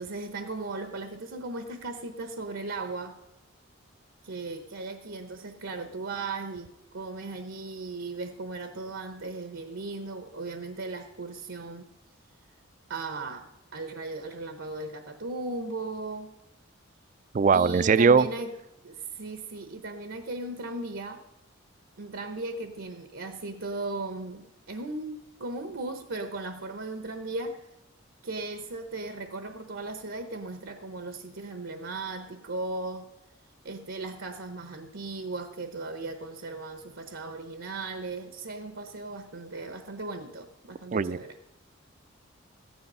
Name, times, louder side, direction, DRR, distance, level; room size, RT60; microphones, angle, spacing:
voice 1, 0.0-3.2 4.2-11.9 12.9-16.3 17.5-18.5 18.8-21.2 22.0-27.7 28.2-33.1 33.6-41.4, right 3 dB, 75° right, 7 dB, 0.9 m, -37 dB
voice 2, 17.3-18.3 40.9-41.2, right 5 dB, 40° right, 16 dB, 0.3 m, -20 dB
15.0 x 10.5 x 5.5 m, 0.90 s
head